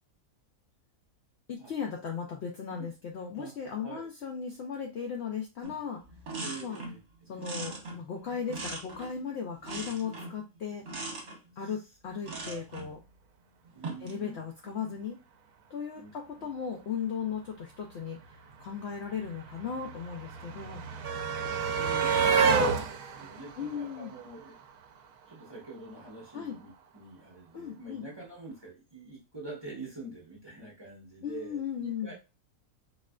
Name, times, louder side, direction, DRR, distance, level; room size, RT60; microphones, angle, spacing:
voice 1, 1.5-6.0 6.6-6.8 7.3-10.8 11.6-13.0 14.0-15.2 15.7-18.2 18.6-20.9 23.6-24.1 26.3-26.6 27.5-28.1 31.2-32.1, left 7 dB, 65° left, 1 dB, 0.7 m, -37 dB
sound 1, 5.6-5.8 6.1-7.0 7.4-9.2 9.6-10.4 10.9-11.4 12.2-12.9 13.7-14.2, right 2 dB, 55° right, 1.1 m, -40 dB
voice 2, 6.3-7.4 11.6-11.9 12.3-12.4 13.7-14.4 14.8-15.0 15.9-16.1 16.4-16.5 21.6-24.6 25.3-32.1, right 3 dB, 20° right, -5 dB, 0.8 m, -46 dB
sound 2, 18.2-18.3 18.5-24.7 25.9-26.0 26.3-26.4, right 5 dB, 70° right, 0.9 m, -29 dB
4.2 x 2.4 x 2.2 m, 0.28 s
omnidirectional pair, 1.6 m